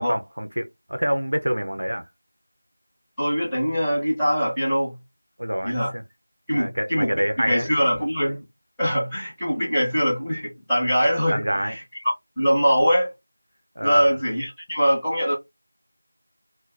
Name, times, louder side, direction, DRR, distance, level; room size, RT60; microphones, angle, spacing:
voice 1, 0.0-2.1 5.4-6.0 6.5-7.7 11.3-11.8 13.8-14.1, equal, 75° right, 0.6 m, -27 dB
voice 2, 3.2-4.9 5.6-5.9 6.5-8.4 8.8-11.7 12.4-13.1 13.8-15.3, equal, ahead, 1.0 m, -22 dB
2.6 x 2.2 x 3.2 m
figure-of-eight pair, 175°, 0 cm